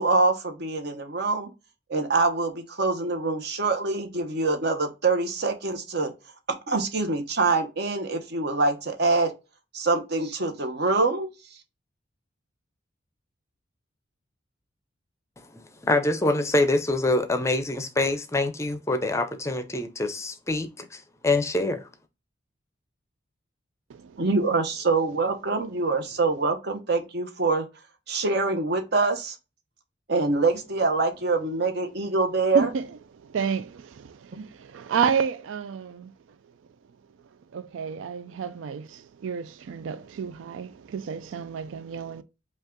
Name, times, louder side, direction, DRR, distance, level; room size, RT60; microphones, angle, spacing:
voice 1, 0.0-1.5 1.9-6.1 6.7-9.3 9.7-11.3 24.2-27.6 28.1-29.4 30.1-32.7 34.3-34.5, right 3 dB, 55° right, 1.0 m, -25 dB
voice 2, 15.4-21.9, left 2 dB, 15° left, 0.5 m, -25 dB
voice 3, 23.9-24.2 32.5-32.9 33.2-36.1 37.5-42.2, right 6 dB, 85° right, 0.4 m, -30 dB
5.3 x 2.4 x 3.7 m
head